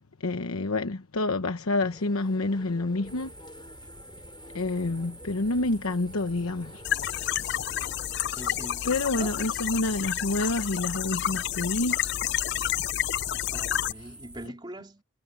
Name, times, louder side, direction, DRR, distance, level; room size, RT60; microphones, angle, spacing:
voice 1, 0.2-3.3 4.5-7.5 8.8-12.0, left 2 dB, 85° left, 1.1 m, -28 dB
sound 1, 1.8-9.5, left 1 dB, 20° left, 4.2 m, -51 dB
sound 2, 3.0-14.5, right 1 dB, 5° right, 5.0 m, -48 dB
sound 3, 6.8-13.9, left 11 dB, 50° left, 0.4 m, -30 dB
voice 2, 8.3-9.5 13.5-15.0, right 1 dB, 20° right, 3.4 m, -42 dB
head